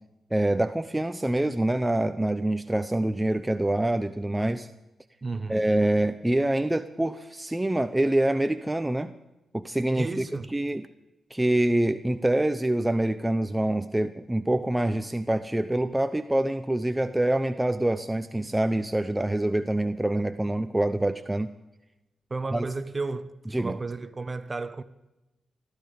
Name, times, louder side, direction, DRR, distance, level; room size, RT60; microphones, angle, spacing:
voice 1, 0.3-4.7 5.5-9.1 9.5-10.8 11.3-21.5 22.5-22.7 23.5-23.8, right 1 dB, 10° right, 0.8 m, -25 dB
voice 2, 5.2-5.7 9.9-10.5 22.3-24.8, right 3 dB, 30° right, 1.1 m, -33 dB
20.5 x 13.5 x 5.2 m
cardioid pair, 80°, 0 cm